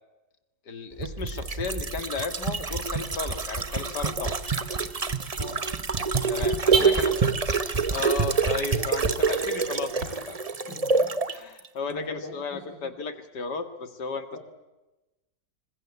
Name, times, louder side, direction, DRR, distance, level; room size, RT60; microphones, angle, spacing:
voice 1, 0.7-4.4 6.3-7.1 7.9-9.9 10.3-10.4 11.3-14.4, left 4 dB, 70° left, 10 dB, 2.6 m, -34 dB
Car / Alarm, 0.9-10.1, right 4 dB, 55° right, 3.6 m, -38 dB
sound 1, 1.0-11.4 11.6-11.7, right 5 dB, 25° right, 0.9 m, -26 dB
voice 2, 10.6-11.1 11.9-12.9 14.3-14.4, left 2 dB, 90° left, -1 dB, 5.2 m, -41 dB
25.5 x 21.0 x 8.3 m, 1.0 s
omnidirectional pair, 1.9 m